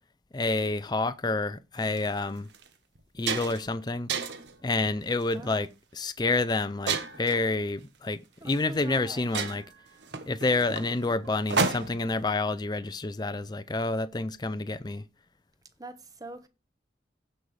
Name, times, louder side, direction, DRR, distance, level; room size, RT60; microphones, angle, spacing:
voice 1, 0.3-2.5 3.1-4.1 4.6-9.6 10.3-15.0, left 3 dB, 25° left, 0.5 m, -29 dB
sound 1, 1.8-2.0 2.5-2.7 3.0-3.7 4.1-4.5 5.2-5.5 6.9-7.4 8.5-8.6 8.9-9.0 9.3-12.1, right 5 dB, 85° right, 1.2 m, -31 dB
voice 2, 8.4-9.5 15.8-16.5, right 1 dB, 20° right, 0.9 m, -43 dB
15.5 x 5.6 x 3.3 m
head